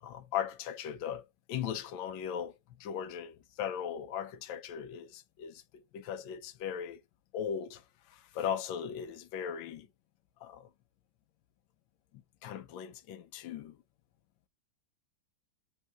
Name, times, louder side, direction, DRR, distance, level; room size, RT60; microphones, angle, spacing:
voice 1, 0.0-7.0 7.3-9.9 10.4-10.7 12.4-13.8, left 8 dB, 75° left, 1.4 m, -38 dB
4.9 x 3.2 x 3.1 m
omnidirectional pair, 2.2 m